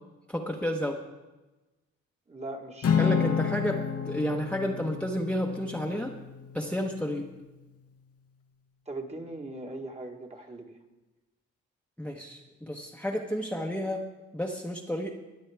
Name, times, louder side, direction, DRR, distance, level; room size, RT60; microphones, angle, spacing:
voice 1, 0.3-1.0 3.0-6.2 6.5-7.3 12.0-14.0 14.3-15.1, equal, 5° left, 0 dB, 1.0 m, -31 dB
voice 2, 2.3-3.3 8.9-10.7, right 2 dB, 20° right, 3 dB, 1.5 m, -40 dB
Acoustic guitar / Strum, 2.8-7.3, left 7 dB, 50° left, 0.9 m, -30 dB
21.5 x 7.8 x 3.5 m, 1.1 s
cardioid pair, 90°, 30 cm